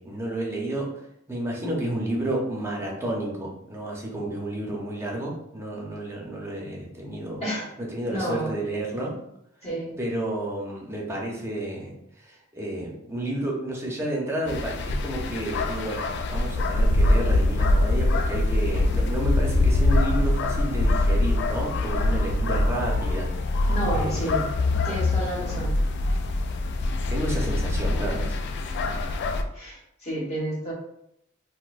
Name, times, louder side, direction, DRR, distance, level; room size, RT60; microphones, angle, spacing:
voice 1, 0.0-7.4 7.8-9.1 10.0-16.0 16.3-24.5 27.1-28.4, right 1 dB, 15° right, -2 dB, 0.7 m, -31 dB
voice 2, 8.1-8.5 9.6-10.0 23.7-24.4 24.8-25.8 28.8-28.9 29.5-30.7, right 1 dB, 35° left, -6 dB, 1.3 m, -30 dB
sound 1, 14.5-29.4, left 2 dB, 55° left, 0.3 m, -24 dB
4.1 x 2.2 x 2.5 m, 0.77 s
head